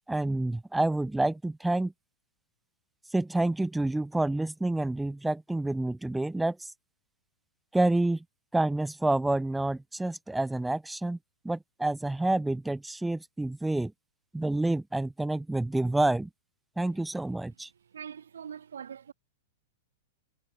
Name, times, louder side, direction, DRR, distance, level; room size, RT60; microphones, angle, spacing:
voice 1, 0.1-1.9 3.1-6.6 7.7-8.2 8.5-11.2 11.4-13.9 14.3-16.3 16.8-17.7, right 2 dB, 5° right, 1.8 m, -28 dB
voice 2, 17.9-19.1, right 8 dB, 90° right, 1.3 m, -42 dB
hypercardioid pair, 125°, 0 cm